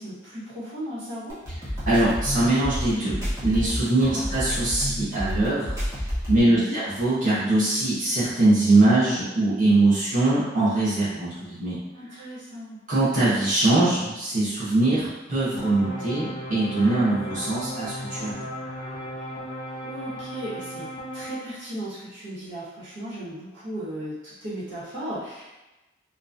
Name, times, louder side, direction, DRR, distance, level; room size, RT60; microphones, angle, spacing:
voice 1, 0.0-1.3 4.0-4.3 6.4-6.8 11.9-12.8 19.8-20.9 21.1-25.6, right 1 dB, 85° right, -10 dB, 1.2 m, -36 dB
sound 1, 1.3-6.4, equal, 15° right, 0.9 m, -29 dB
voice 2, 1.9-3.1 3.4-11.8 12.1-12.2 12.9-18.5, right 2 dB, 45° right, -11 dB, 1.0 m, -22 dB
sound 2, 15.6-21.4, equal, 30° left, 0.4 m, -36 dB
2.9 x 2.2 x 2.5 m, 1.0 s
head